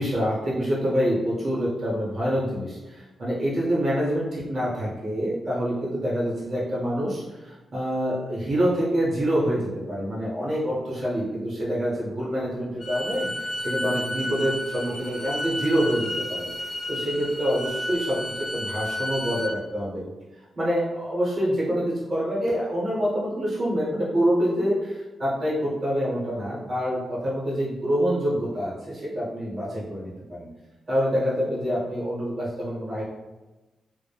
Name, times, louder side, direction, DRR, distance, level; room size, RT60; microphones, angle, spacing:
voice 1, 0.0-13.3 13.6-16.5 16.9-18.2 18.5-20.0 20.6-30.5 30.9-33.0, equal, 35° right, -8 dB, 0.7 m, -26 dB
Bowed string instrument, 12.8-19.5, left 1 dB, 25° left, 0.4 m, -32 dB
2.2 x 2.0 x 3.2 m, 1.1 s
wide cardioid pair, 180°, 0 cm